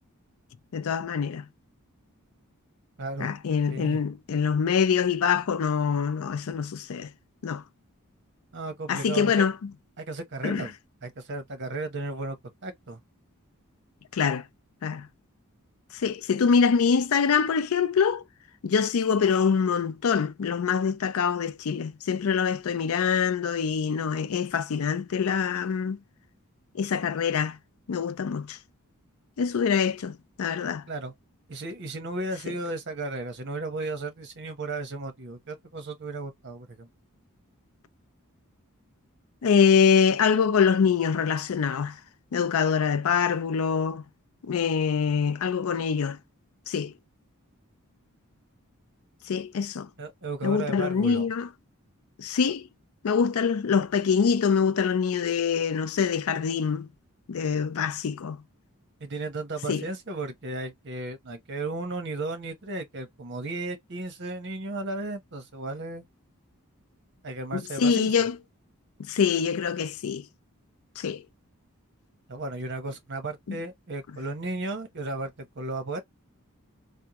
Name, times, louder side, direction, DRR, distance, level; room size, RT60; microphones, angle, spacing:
voice 1, 0.7-1.5 3.2-7.1 7.4-7.6 8.9-9.7 10.4-10.7 14.1-14.5 14.8-15.1 15.9-18.2 18.6-26.0 26.7-27.6 27.9-28.6 29.4-30.8 39.4-42.0 42.3-44.0 44.4-46.2 46.7-46.9 49.2-49.9 50.4-51.5 52.2-52.7 53.0-56.9 57.3-58.4 59.7-59.9 67.5-68.4 69.0-70.3 71.0-71.2 73.5-73.6, left 6 dB, 70° left, 0.4 m, -24 dB
voice 2, 3.0-3.3 3.7-4.0 8.5-9.4 10.0-10.7 11.0-12.4 12.6-13.0 30.9-31.1 31.5-36.9 50.0-51.3 59.0-66.1 67.2-68.3 72.3-76.0, right 2 dB, 55° right, 1.0 m, -34 dB
3.5 x 2.1 x 2.9 m
head